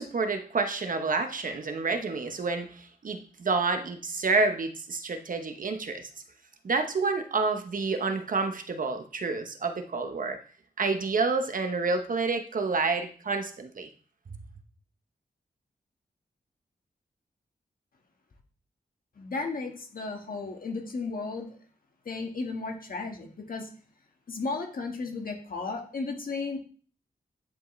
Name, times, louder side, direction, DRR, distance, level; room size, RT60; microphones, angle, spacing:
voice 1, 0.0-6.1 6.6-10.4 10.8-13.9, right 4 dB, 55° right, 6 dB, 0.9 m, -29 dB
voice 2, 19.2-21.6 22.0-23.7 24.3-26.6, left 3 dB, 60° left, 2 dB, 1.6 m, -34 dB
10.5 x 4.8 x 3.2 m, 0.42 s
wide cardioid pair, 95°, 16 cm